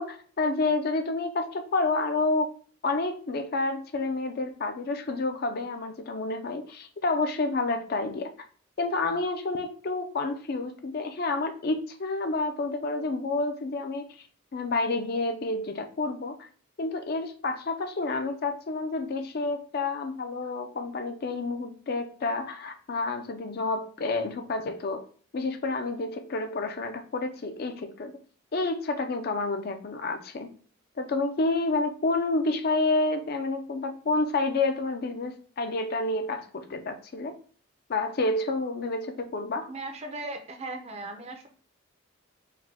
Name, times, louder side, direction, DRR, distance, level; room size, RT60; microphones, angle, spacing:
voice 1, 0.0-2.5 2.8-8.3 8.8-14.1 14.5-16.5 16.8-25.0 25.3-28.1 28.5-30.5 31.0-37.4 37.9-39.7, left 3 dB, 50° left, 7 dB, 0.4 m, -29 dB
voice 2, 39.6-41.5, right 2 dB, 30° right, 6 dB, 0.5 m, -37 dB
4.7 x 2.2 x 3.3 m, 0.44 s
head